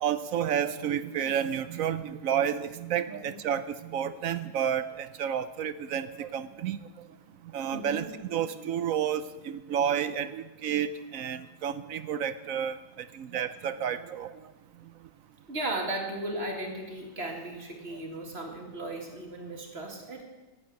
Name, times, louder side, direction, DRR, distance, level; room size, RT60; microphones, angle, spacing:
voice 1, 0.0-6.8 7.5-12.8 13.1-14.3, right 9 dB, 65° right, 14 dB, 0.8 m, -30 dB
voice 2, 3.1-3.4 7.7-8.1 15.5-20.2, right 1 dB, 35° right, 2 dB, 2.3 m, -36 dB
11.5 x 9.6 x 9.2 m, 1.1 s
omnidirectional pair, 1.8 m